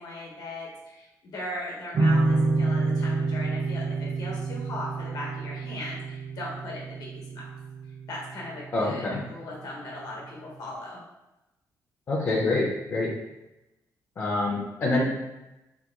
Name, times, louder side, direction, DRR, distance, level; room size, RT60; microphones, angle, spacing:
voice 1, 0.0-7.4 8.1-11.0, left 1 dB, 70° left, -3 dB, 1.0 m, -38 dB
sound 1, 1.9-9.2, right 3 dB, 40° right, 0.3 m, -28 dB
voice 2, 8.7-9.2 12.1-13.1 14.2-15.1, left 2 dB, 35° left, -5 dB, 0.4 m, -26 dB
2.9 x 2.2 x 3.4 m, 0.97 s
wide cardioid pair, 170°, 7 cm